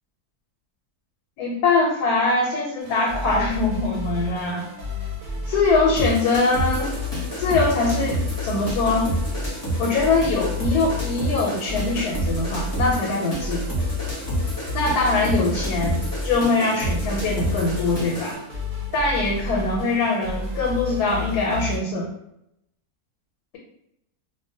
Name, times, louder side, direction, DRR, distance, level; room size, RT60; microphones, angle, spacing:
voice 1, 1.4-4.7 5.5-6.9 7.4-9.1 9.8-13.7 14.7-18.4 18.9-22.1, left 3 dB, 90° left, -2 dB, 1.1 m, -22 dB
sound 1, 2.8-21.8, left 2 dB, 65° right, 0.9 m, -31 dB
sound 2, 6.0-18.3, right 1 dB, 25° left, 0.4 m, -29 dB
2.5 x 2.1 x 2.6 m, 0.80 s
omnidirectional pair, 1.6 m